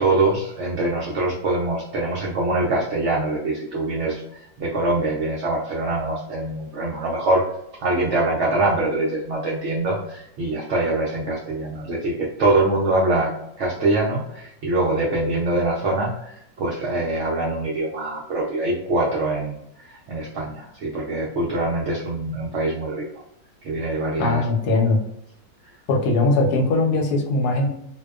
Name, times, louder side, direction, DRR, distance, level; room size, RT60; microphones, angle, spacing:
voice 1, 0.0-7.4 7.8-23.0 23.6-24.4, right 2 dB, 70° right, -3 dB, 0.7 m, -24 dB
voice 2, 24.2-25.0 25.9-27.7, left 2 dB, 80° left, 1 dB, 1.2 m, -20 dB
2.7 x 2.1 x 2.3 m, 0.77 s
omnidirectional pair, 1.7 m